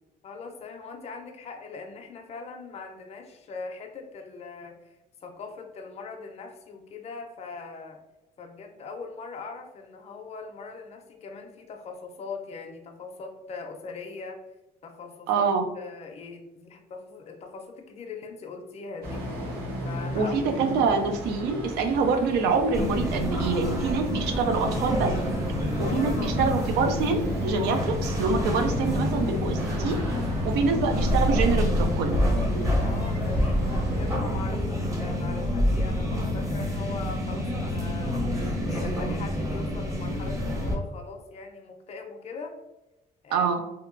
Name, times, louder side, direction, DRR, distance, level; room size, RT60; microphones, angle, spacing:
voice 1, 0.2-5.0 5.2-8.0 8.4-14.4 14.8-15.5 15.8-19.3 19.8-20.4 25.8-26.4 30.1-30.3 32.8-38.2 38.7-42.5 43.2-43.5, left 4 dB, 40° left, 3 dB, 0.5 m, -40 dB
voice 2, 15.3-15.7 20.1-25.1 25.8-30.0 30.4-32.2 43.3-43.6, right 4 dB, 85° right, 6 dB, 0.5 m, -25 dB
sound 1, 19.0-34.2, equal, 70° right, 0.9 m, -36 dB
sound 2, 22.7-40.7, left 1 dB, 20° right, 0.6 m, -27 dB
2.8 x 2.2 x 2.5 m, 0.96 s
cardioid pair, 110°, 17 cm